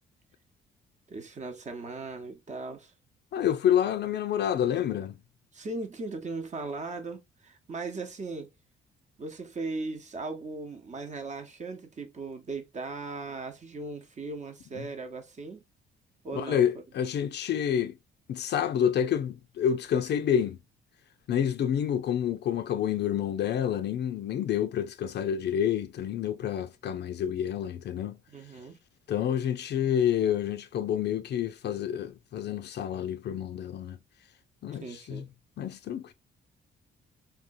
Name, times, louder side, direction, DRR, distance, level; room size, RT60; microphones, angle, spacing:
voice 1, 1.1-2.9 5.5-8.5 9.2-15.6 16.2-16.7 28.3-28.8 34.8-35.3, right 3 dB, 35° right, 0.8 m, -38 dB
voice 2, 3.3-5.1 14.8-14.9 16.3-18.0 18.3-20.6 21.3-28.2 29.1-34.0 34.6-35.3 35.6-36.1, left 9 dB, 60° left, 0.5 m, -28 dB
3.6 x 2.3 x 2.6 m
cardioid pair, 90°, 20 cm